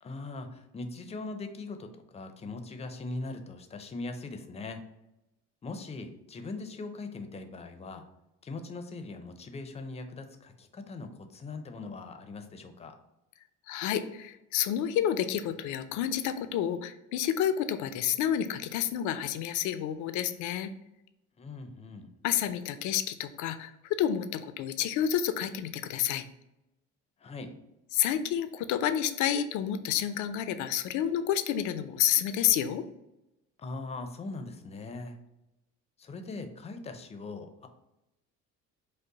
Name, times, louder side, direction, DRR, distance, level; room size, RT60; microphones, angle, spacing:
voice 1, 0.0-4.8 5.6-8.0 8.4-13.0 21.4-22.1 27.2-27.5 33.6-35.2 36.0-37.7, left 3 dB, 20° left, 6 dB, 0.5 m, -40 dB
voice 2, 13.7-20.7 22.2-26.2 27.9-32.9, left 10 dB, 75° left, 11 dB, 0.5 m, -29 dB
5.3 x 2.1 x 3.9 m, 0.92 s
cardioid pair, 120°, 30 cm